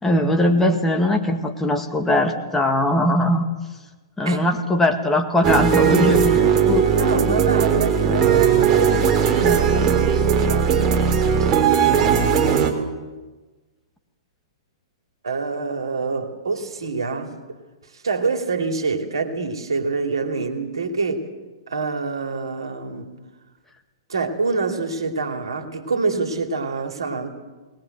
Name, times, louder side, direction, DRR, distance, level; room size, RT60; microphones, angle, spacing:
voice 1, 0.0-3.5 4.2-6.9 9.4-9.6, left 1 dB, 10° left, 4 dB, 2.0 m, -20 dB
sound 1, 5.4-12.7, right 7 dB, 25° right, 3.5 m, -18 dB
voice 2, 7.0-11.5 15.2-17.3 18.0-21.3 21.7-23.1 24.1-27.3, right 4 dB, 70° right, 5 dB, 2.8 m, -26 dB
21.0 x 20.5 x 8.0 m, 1.2 s
figure-of-eight pair, 110°, 3 cm